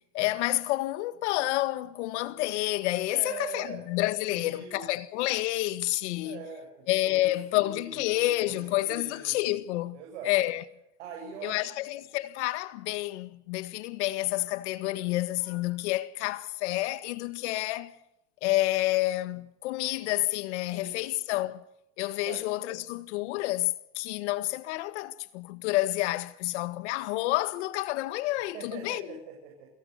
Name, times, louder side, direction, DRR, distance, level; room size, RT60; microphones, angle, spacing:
voice 1, 0.0-6.4 6.9-10.6 11.4-17.9 18.4-21.6 22.0-29.2, left 17 dB, 80° left, 1.8 m, -29 dB
voice 2, 3.1-3.8 4.3-4.9 6.2-9.4 9.9-10.3 11.0-11.8 20.7-21.0 22.2-22.4 28.5-29.7, right 6 dB, 90° right, 7.3 m, -43 dB
28.0 x 18.5 x 6.8 m
supercardioid pair, 140°, 34 cm